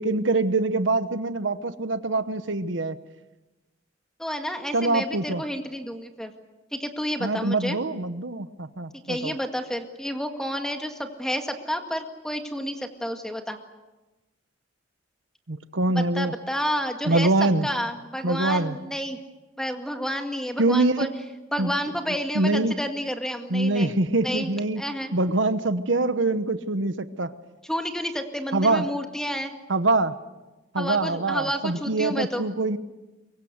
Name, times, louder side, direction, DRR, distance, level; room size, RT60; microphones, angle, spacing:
voice 1, 0.0-3.0 4.7-5.4 7.2-9.3 15.5-16.3 17.1-17.7 18.2-18.8 20.6-21.1 21.6-21.7 22.3-22.7 23.5-24.8 25.1-27.3 28.5-28.9 29.7-30.2 30.7-32.8, right 2 dB, 75° right, 11 dB, 1.1 m, -24 dB
voice 2, 4.2-6.3 6.7-7.8 9.1-13.6 15.9-19.2 19.6-21.1 21.5-23.9 24.2-24.5 24.8-25.1 27.7-29.5 30.8-32.4, equal, 5° left, 5 dB, 2.0 m, -30 dB
24.0 x 23.0 x 8.1 m, 1.1 s
head